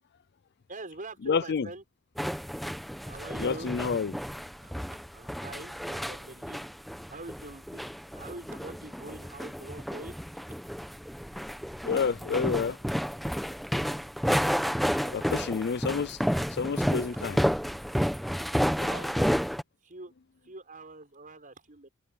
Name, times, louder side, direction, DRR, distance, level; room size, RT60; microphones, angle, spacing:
voice 1, 0.7-1.8 3.0-3.7 4.6-4.7 5.1-6.6 7.1-10.2 15.0-15.6 18.8-19.3 19.8-20.1 20.4-21.9, right 2 dB, 40° right, 5.6 m, -44 dB
voice 2, 1.2-1.7 3.4-4.1 11.8-12.8 15.1-16.2 16.5-17.4, left 5 dB, 50° left, 0.4 m, -29 dB
sound 1, 2.2-19.6, equal, ahead, 1.1 m, -31 dB
head